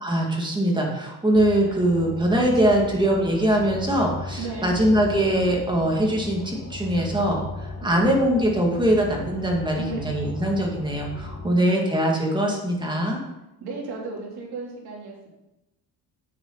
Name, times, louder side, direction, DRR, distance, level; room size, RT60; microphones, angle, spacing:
voice 1, 0.0-13.2, right 1 dB, 10° right, -1 dB, 2.3 m, -22 dB
sound 1, 1.3-11.5, left 2 dB, 40° left, 2.1 m, -37 dB
voice 2, 4.4-4.8 7.8-8.1 9.7-10.1 11.4-11.8 13.6-15.3, right 3 dB, 75° right, -2 dB, 3.5 m, -35 dB
9.4 x 8.8 x 4.1 m, 0.94 s
cardioid pair, 120°, 39 cm